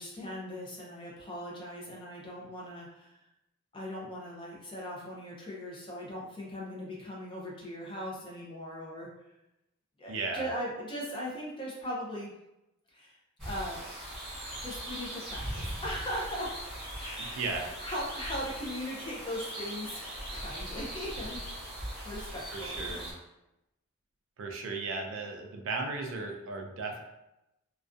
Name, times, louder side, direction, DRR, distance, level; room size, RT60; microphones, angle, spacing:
voice 1, 0.0-3.2 3.7-9.1 10.0-12.3 12.9-13.1 13.4-13.8 14.6-16.5 17.0-17.5 17.8-21.4 22.0-23.0, equal, 20° left, -4 dB, 0.5 m, -39 dB
voice 2, 10.1-10.4 17.4-17.8 22.5-23.1 24.4-27.0, right 3 dB, 60° right, 3 dB, 0.3 m, -35 dB
sound 1, 13.4-23.1, right 1 dB, ahead, 1.0 m, -40 dB
2.4 x 2.2 x 2.4 m, 0.91 s
head